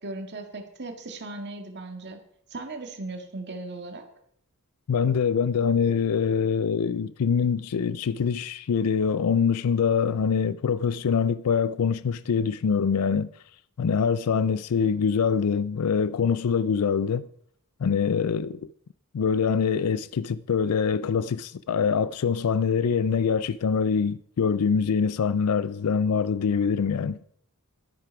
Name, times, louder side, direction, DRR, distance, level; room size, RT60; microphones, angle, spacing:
voice 1, 0.0-2.2 2.5-4.1, right 2 dB, 50° right, 1.9 m, -37 dB
voice 2, 4.9-13.3 13.8-17.3 17.8-18.6 19.1-27.2, left 6 dB, 85° left, 0.4 m, -24 dB
12.5 x 10.5 x 4.7 m
head